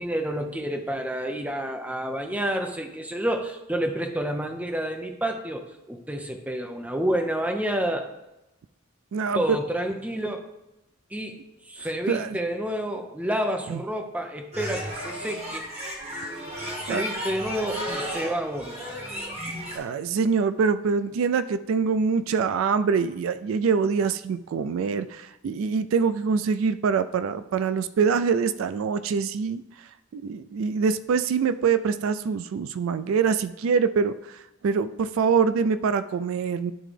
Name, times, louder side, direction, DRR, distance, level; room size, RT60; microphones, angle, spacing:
voice 1, 0.0-8.1 9.3-10.4 11.1-11.4 11.7-15.7 16.8-19.3, right 1 dB, 5° right, 4 dB, 0.6 m, -29 dB
voice 2, 9.1-9.6 12.1-12.4 13.7-13.8 16.6-17.0 19.7-29.6 30.1-36.7, right 5 dB, 75° right, 13 dB, 0.3 m, -24 dB
sound 1, 14.5-19.8, equal, 30° right, 1.4 m, -34 dB
11.0 x 3.8 x 3.3 m, 0.92 s
head